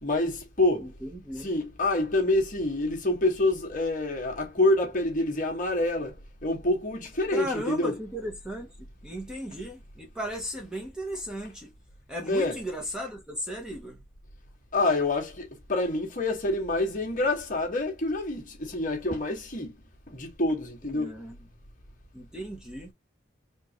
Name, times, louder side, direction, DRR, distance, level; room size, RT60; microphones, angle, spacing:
voice 1, 0.0-0.9 1.4-7.9 12.3-12.6 14.7-19.8 20.1-21.1, left 2 dB, 40° left, 1.7 m, -27 dB
voice 2, 0.8-1.5 7.3-11.7 12.1-14.0 20.9-21.4 22.1-22.9, equal, 5° right, 1.1 m, -36 dB
4.4 x 2.6 x 3.1 m
head